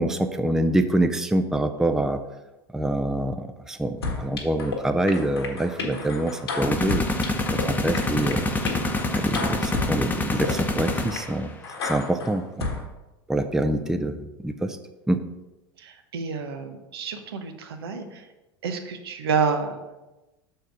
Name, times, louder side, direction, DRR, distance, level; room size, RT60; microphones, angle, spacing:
voice 1, 0.0-2.2 2.7-7.0 7.5-8.5 9.1-11.5 11.8-12.7 13.3-14.8 15.1-15.2, right 1 dB, 5° right, 8 dB, 0.4 m, -25 dB
sound 1, 4.0-4.8 5.1-7.6 7.9-9.9 10.3-10.5 10.9-11.2 11.6-12.8, left 4 dB, 85° left, 1.4 m, -32 dB
sound 2, 6.6-11.5, left 2 dB, 15° left, 0.9 m, -26 dB
voice 2, 15.8-18.3 18.6-19.8, right 5 dB, 80° right, 6 dB, 1.0 m, -29 dB
6.3 x 4.6 x 4.8 m, 1.0 s
hypercardioid pair, 90°, 13 cm